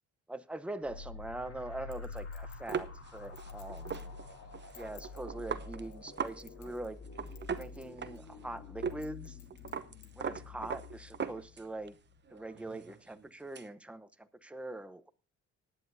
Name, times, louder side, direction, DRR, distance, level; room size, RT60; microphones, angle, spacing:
voice 1, 0.3-2.9 3.1-4.1 4.7-7.0 7.5-9.4 10.2-12.0 12.3-15.1, right 2 dB, 5° right, 0.9 m, -43 dB
sound 1, 0.8-12.2, left 4 dB, 50° left, 2.8 m, -47 dB
Chink clink, 1.9-4.1 4.6-5.2 5.8-7.0 7.3-7.8 8.2-8.3 8.9-10.1 10.6-10.7, left 9 dB, 70° left, 1.9 m, -57 dB
sound 2, 2.7-6.4 6.7-6.8 7.1-8.4 8.8-9.0 9.3-11.9 12.3-13.7, right 6 dB, 35° right, 0.9 m, -40 dB
19.0 x 9.6 x 2.7 m
cardioid pair, 90°, 30 cm